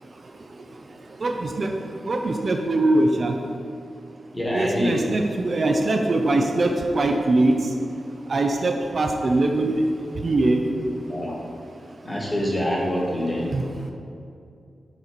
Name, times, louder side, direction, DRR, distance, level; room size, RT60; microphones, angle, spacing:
voice 1, 1.2-3.4 4.5-7.7 8.3-9.9 10.2-10.7 13.5-13.6, right 2 dB, 50° right, 3 dB, 0.4 m, -22 dB
voice 2, 4.3-5.0 11.1-11.4 12.0-13.6, equal, 15° left, -3 dB, 1.3 m, -25 dB
6.6 x 4.2 x 4.4 m, 2.5 s
wide cardioid pair, 115°, 0 cm